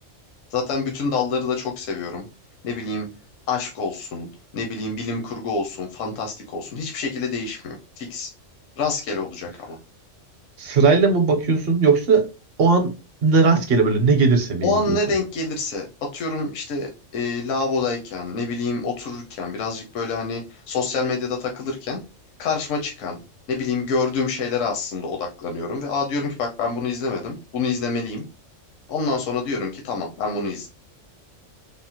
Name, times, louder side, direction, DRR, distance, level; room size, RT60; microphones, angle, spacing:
voice 1, 0.5-2.3 2.6-3.1 3.5-4.3 4.5-8.3 8.8-9.8 14.6-22.0 22.4-23.2 23.5-28.2 28.9-30.7, left 4 dB, 80° left, 1.0 m, -27 dB
voice 2, 10.6-12.2 12.6-12.9 13.2-15.0, right 4 dB, 55° right, 0.9 m, -18 dB
3.5 x 2.0 x 2.7 m
omnidirectional pair, 1.3 m